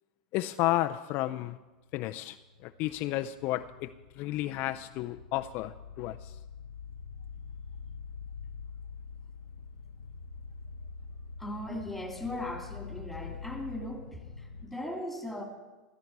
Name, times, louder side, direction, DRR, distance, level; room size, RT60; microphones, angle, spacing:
voice 1, 0.3-1.6 1.9-2.4 2.6-6.3, left 16 dB, 50° left, 9 dB, 0.5 m, -32 dB
sound 1, 1.9-14.7, left 5 dB, 90° left, 0.7 m, -45 dB
voice 2, 11.4-15.4, left 1 dB, ahead, 2 dB, 2.8 m, -38 dB
15.5 x 13.0 x 4.7 m, 1.2 s
supercardioid pair, 115°, 4 cm